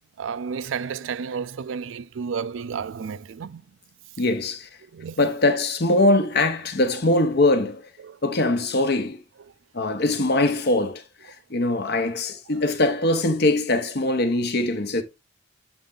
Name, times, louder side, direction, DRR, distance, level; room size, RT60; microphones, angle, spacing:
voice 1, 0.2-3.6 4.9-5.2 8.0-8.2, right 6 dB, 75° right, 0.4 m, -31 dB
voice 2, 4.2-4.7 5.2-7.9 8.2-9.2 9.7-15.0, left 2 dB, 60° left, 0.9 m, -22 dB
7.2 x 4.2 x 3.7 m
head